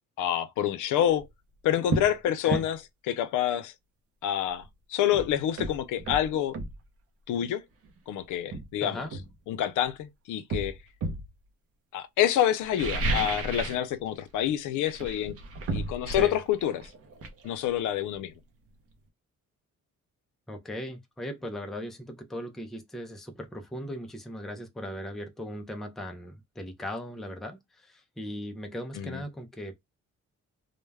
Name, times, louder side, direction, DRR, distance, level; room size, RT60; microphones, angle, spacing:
voice 1, 0.2-1.3 1.6-2.8 3.1-3.7 4.2-4.6 4.9-6.5 7.3-7.6 8.1-9.1 9.5-10.8 11.9-15.4 15.7-16.9 17.4-18.3 29.0-29.2, left 11 dB, 90° left, 0.5 m, -27 dB
sound 1, 1.1-1.3 1.9-2.1 2.5-2.7 4.6-4.7 5.1-6.8 7.8-8.0 8.5-9.9 10.5-11.3 12.6-13.9 14.1-14.5 14.8-18.4 18.7-18.8, right 2 dB, 50° right, 0.6 m, -33 dB
voice 2, 8.8-9.1 16.1-16.4 20.5-29.7, equal, ahead, 0.3 m, -38 dB
2.2 x 2.2 x 3.2 m
cardioid pair, 170°, 30 cm